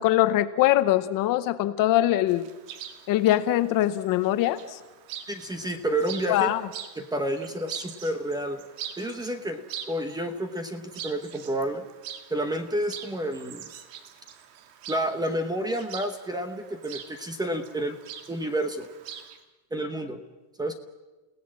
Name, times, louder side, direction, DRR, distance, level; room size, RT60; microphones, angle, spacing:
voice 1, 0.0-2.5 3.1-4.8 6.3-6.6, left 14 dB, 40° left, 12 dB, 0.9 m, -22 dB
Chirp tweet, 2.3-19.4, right 9 dB, 90° right, 2.3 m, -44 dB
voice 2, 5.3-6.5 7.0-8.6 9.0-11.9 12.3-13.7 14.9-18.0 18.3-18.9 19.7-20.2 20.6-20.7, right 1 dB, 10° right, 8 dB, 0.9 m, -30 dB
29.5 x 17.0 x 7.5 m, 1.2 s
cardioid pair, 175°, 50 cm